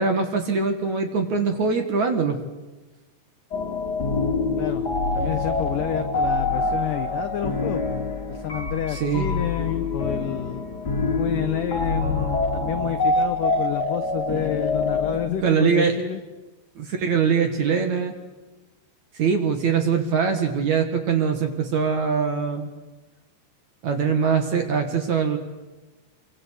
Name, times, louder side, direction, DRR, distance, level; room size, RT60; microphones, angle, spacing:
voice 1, 0.0-2.4 8.9-9.3 15.4-16.0 16.8-18.1 19.1-22.7 23.8-25.4, right 6 dB, 50° right, 6 dB, 2.6 m, -22 dB
sound 1, 3.5-15.3, left 3 dB, 30° left, 2.5 m, -25 dB
voice 2, 5.1-7.8 8.3-10.6 11.2-16.2, left 12 dB, 75° left, 9 dB, 1.9 m, -29 dB
28.0 x 24.0 x 8.3 m, 1.1 s
omnidirectional pair, 5.3 m